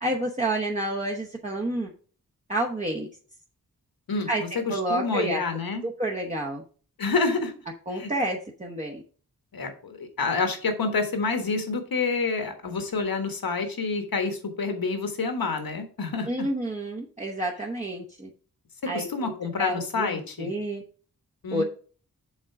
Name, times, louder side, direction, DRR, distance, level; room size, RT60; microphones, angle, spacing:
voice 1, 0.0-1.9 2.5-3.1 4.3-4.4 4.7-5.4 5.8-6.6 7.9-9.0 16.3-18.3 18.9-20.8 21.5-21.6, right 1 dB, 20° right, -3 dB, 0.9 m, -29 dB
voice 2, 4.5-5.9 7.0-7.5 8.0-8.1 9.5-16.5 18.9-20.5 21.4-21.6, left 4 dB, 75° left, 6 dB, 1.4 m, -28 dB
7.3 x 3.8 x 5.8 m, 0.41 s
wide cardioid pair, 105°, 36 cm